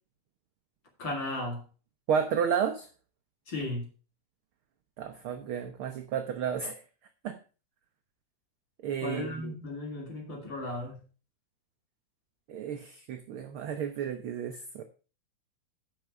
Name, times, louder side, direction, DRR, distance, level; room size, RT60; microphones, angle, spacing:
voice 1, 1.0-1.6 3.5-3.8 9.0-11.0, left 2 dB, 40° left, 1 dB, 3.2 m, -35 dB
voice 2, 2.1-2.9 5.0-6.8 7.2-7.4 8.8-9.5 12.5-14.8, right 7 dB, 80° right, 7 dB, 1.1 m, -32 dB
9.5 x 5.9 x 5.9 m, 0.35 s
omnidirectional pair, 3.4 m